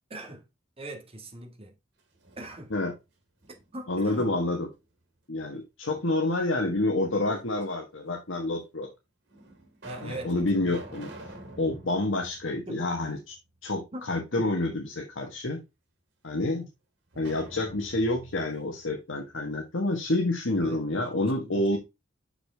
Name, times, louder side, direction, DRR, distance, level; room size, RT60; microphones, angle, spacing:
voice 1, 0.1-0.4 0.8-1.7 2.4-2.7 3.7-4.3 9.8-11.0 12.7-12.8 13.9-14.1 14.4-14.5 20.6-20.8 21.1-21.8, right 1 dB, 30° right, 1.6 m, -41 dB
sound 1, 2.0-3.0 3.4-4.7 5.9-6.7 7.6-7.7 8.6-8.7 9.3-13.4 13.7-13.8 17.1-19.9, right 1 dB, 60° right, 3.1 m, -47 dB
voice 2, 3.9-4.7 5.3-8.9 10.0-11.1 11.6-13.3 13.6-15.6 16.2-16.7 17.2-21.8, left 2 dB, 80° left, 1.4 m, -28 dB
6.5 x 5.9 x 3.4 m
head